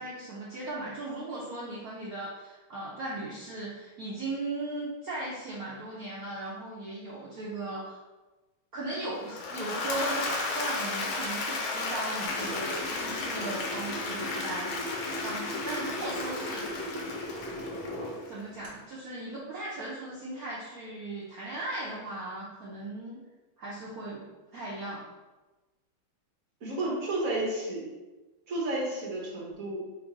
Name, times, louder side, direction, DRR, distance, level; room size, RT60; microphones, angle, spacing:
voice 1, 0.0-8.0 8.7-14.7 15.2-16.9 18.2-23.2 23.6-24.3 24.5-25.1, right 2 dB, 70° right, -7 dB, 0.9 m, -37 dB
Applause / Crowd, 9.2-18.3, left 3 dB, 75° left, 1.5 m, -34 dB
sound 1, 12.2-18.2 18.6-18.7, left 1 dB, 15° right, 1.1 m, -38 dB
voice 2, 26.6-27.9 28.5-29.8, right 2 dB, 50° right, -3 dB, 1.1 m, -31 dB
3.6 x 2.6 x 4.6 m, 1.1 s
omnidirectional pair, 2.4 m